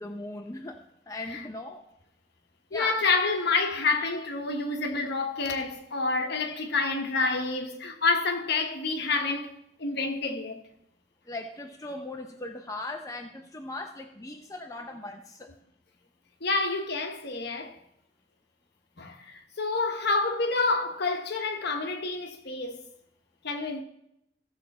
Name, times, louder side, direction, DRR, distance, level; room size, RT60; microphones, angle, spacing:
voice 1, 0.0-1.8 2.7-3.0 11.3-15.5, left 2 dB, 20° left, 0.7 m, -39 dB
voice 2, 2.7-9.5 9.8-10.6 16.4-17.8 19.0-22.9 23.4-23.8, left 3 dB, 60° left, 1.3 m, -28 dB
15.5 x 6.9 x 4.3 m
head